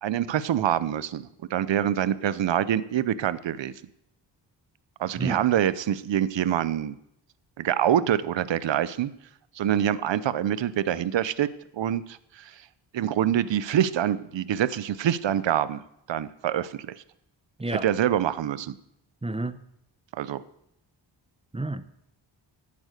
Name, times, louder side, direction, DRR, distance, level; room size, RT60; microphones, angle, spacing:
voice 1, 0.0-3.7 5.0-7.0 7.6-9.1 9.6-11.5 11.7-12.5 12.9-15.8 16.1-16.9 17.7-18.7 20.1-20.4, right 10 dB, 70° right, 17 dB, 0.8 m, -25 dB
voice 2, 19.2-19.6 21.5-21.9, right 2 dB, 15° right, 13 dB, 0.8 m, -30 dB
11.0 x 8.7 x 6.5 m, 0.77 s
cardioid pair, 65°, 45 cm